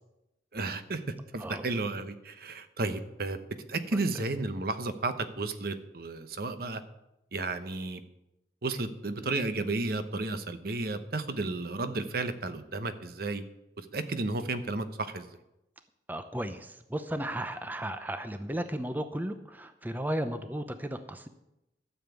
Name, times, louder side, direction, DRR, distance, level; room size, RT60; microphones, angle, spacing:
voice 1, 0.5-1.0 1.3-3.4 3.7-6.8 7.3-8.0 8.6-13.4 13.9-15.3, right 3 dB, 60° right, 10 dB, 0.9 m, -33 dB
voice 2, 16.1-21.3, right 1 dB, 10° right, 9 dB, 0.6 m, -35 dB
12.5 x 7.0 x 8.2 m, 0.88 s
head